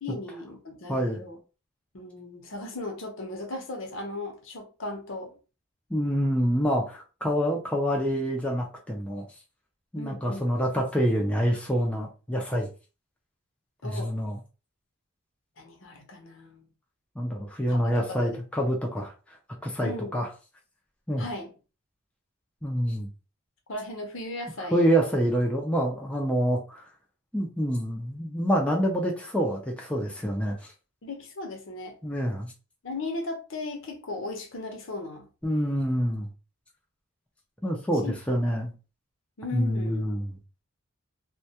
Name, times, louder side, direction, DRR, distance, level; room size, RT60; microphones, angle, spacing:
voice 1, 0.0-1.4 1.9-5.3 10.0-10.7 13.8-14.1 15.6-16.7 17.7-18.7 19.8-20.2 21.2-21.5 23.7-24.9 31.0-32.0 32.8-35.3 38.0-38.4 39.4-40.0, left 2 dB, 70° left, 0.7 m, -37 dB
voice 2, 0.9-1.2 5.9-9.2 9.9-12.7 13.8-14.4 17.2-19.1 19.6-20.3 21.1-21.2 22.6-23.1 24.7-26.8 27.3-30.6 32.0-32.5 35.4-36.3 37.6-38.7 39.5-40.3, equal, 5° left, 0.4 m, -26 dB
2.2 x 2.2 x 2.8 m
head